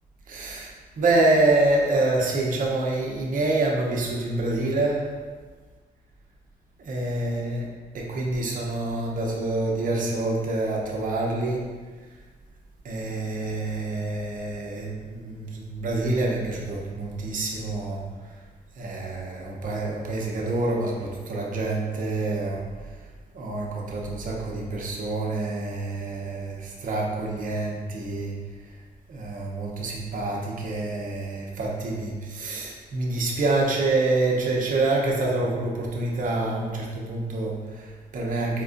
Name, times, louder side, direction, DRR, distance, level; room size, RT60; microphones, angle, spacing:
voice 1, 0.3-5.2 6.8-11.7 12.8-18.1 18.8-22.7 23.3-28.4 29.1-38.6, right 2 dB, 55° right, -2 dB, 0.7 m, -27 dB
4.4 x 2.3 x 2.5 m, 1.4 s
cardioid pair, 100°, 16 cm